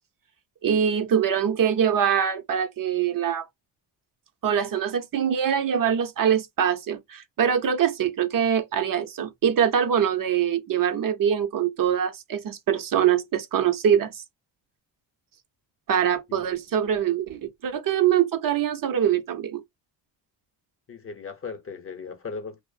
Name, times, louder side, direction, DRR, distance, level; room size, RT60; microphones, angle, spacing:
voice 1, 0.6-3.5 4.4-14.2 15.9-19.6, right 8 dB, 50° right, 0.6 m, -23 dB
voice 2, 20.9-22.6, left 5 dB, 30° left, 0.7 m, -37 dB
2.5 x 2.0 x 2.4 m
cardioid pair, 105°, 44 cm